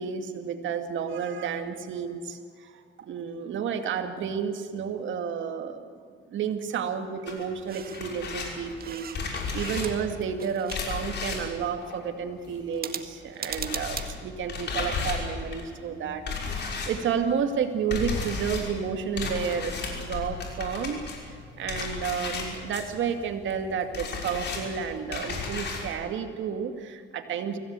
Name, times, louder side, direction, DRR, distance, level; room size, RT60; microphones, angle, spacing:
voice 1, 0.0-2.7 3.0-5.8 6.3-21.0 21.6-27.6, right 7 dB, 75° right, 6 dB, 2.3 m, -31 dB
sound 1, 7.3-12.8 13.0-25.9, left 4 dB, 60° left, 5.9 m, -35 dB
sound 2, 7.7-8.1 8.5-10.1 10.4-11.3 12.7-14.1, right 7 dB, 50° right, 1.8 m, -38 dB
24.5 x 17.0 x 8.4 m, 2.3 s
cardioid pair, 90°, 20 cm